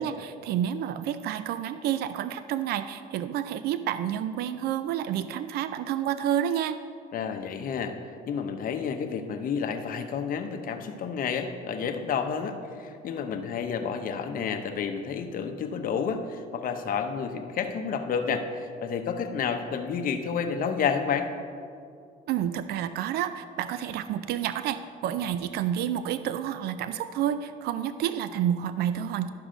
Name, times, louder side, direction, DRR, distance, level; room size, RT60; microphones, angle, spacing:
voice 1, 0.0-6.8 22.3-29.3, right 10 dB, 70° right, 12 dB, 0.4 m, -29 dB
voice 2, 7.1-8.0 8.3-21.3, left 6 dB, 55° left, 6 dB, 0.9 m, -30 dB
11.5 x 6.1 x 5.1 m, 2.3 s
cardioid pair, 110°, 17 cm